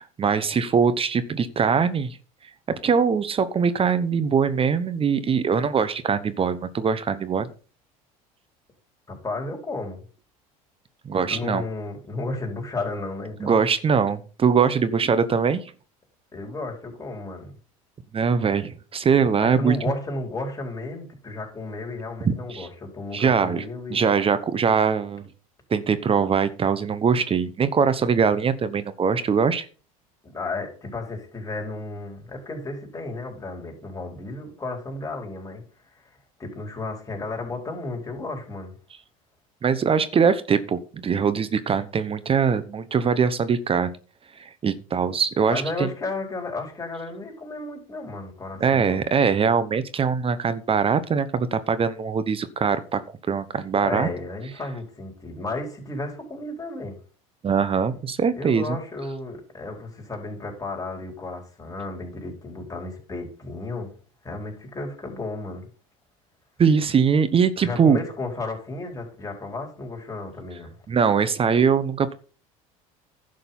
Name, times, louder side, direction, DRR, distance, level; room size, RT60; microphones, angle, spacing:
voice 1, 0.0-2.2 2.7-7.5 11.0-11.6 13.4-15.7 18.1-19.8 22.2-22.7 23.1-23.6 23.9-25.3 25.7-29.7 39.6-43.9 44.4-45.9 48.6-54.1 57.4-58.8 66.6-68.0 70.9-72.1, right 6 dB, 30° right, 1.0 m, -22 dB
voice 2, 9.1-10.0 11.3-13.6 16.3-17.5 19.4-24.1 30.2-35.6 35.9-36.0 36.4-38.8 45.5-49.0 53.8-57.0 58.4-63.9 64.2-65.7 67.6-70.7, left 2 dB, 20° left, 4.6 m, -33 dB
11.0 x 6.5 x 5.6 m
hypercardioid pair, 85°, 19 cm